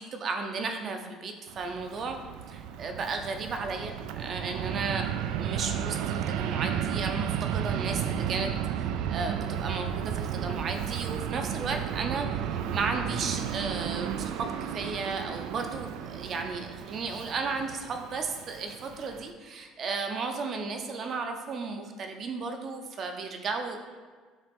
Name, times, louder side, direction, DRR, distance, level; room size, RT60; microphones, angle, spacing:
voice 1, 0.0-2.2 2.5-23.8, right 4 dB, 35° right, 5 dB, 0.6 m, -34 dB
Fixed-wing aircraft airplane, 1.5-19.3, right 9 dB, 70° right, 0.3 m, -33 dB
7.3 x 2.9 x 5.2 m, 1.5 s
cardioid pair, 160°, 0 cm